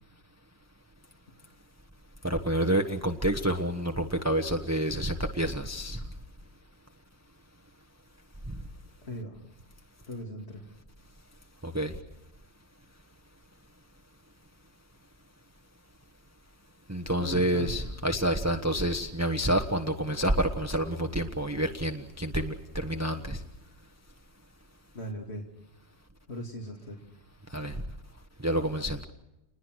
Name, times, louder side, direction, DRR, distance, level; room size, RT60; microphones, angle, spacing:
voice 1, 2.2-6.0 11.6-11.9 16.9-23.4 27.5-27.7 28.4-29.0, right 1 dB, 15° right, 4 dB, 1.2 m, -28 dB
voice 2, 9.0-9.4 10.1-10.6 17.2-17.7 24.9-25.5 26.3-27.0, left 1 dB, 65° left, 0 dB, 3.0 m, -38 dB
29.0 x 21.0 x 6.4 m, 0.94 s
omnidirectional pair, 1.2 m